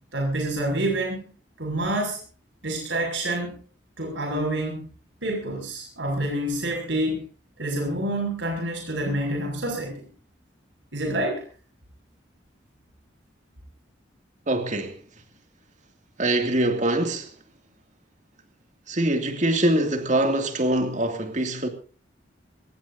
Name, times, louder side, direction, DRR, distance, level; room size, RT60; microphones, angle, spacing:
voice 1, 0.1-1.2 1.6-2.2 2.6-3.6 4.0-4.9 5.2-7.3 7.6-10.0 10.9-11.4, right 1 dB, 90° right, 6.3 m, -27 dB
voice 2, 14.5-15.0 16.2-17.3 18.9-21.7, right 1 dB, 40° right, 2.5 m, -23 dB
23.5 x 19.5 x 2.7 m
head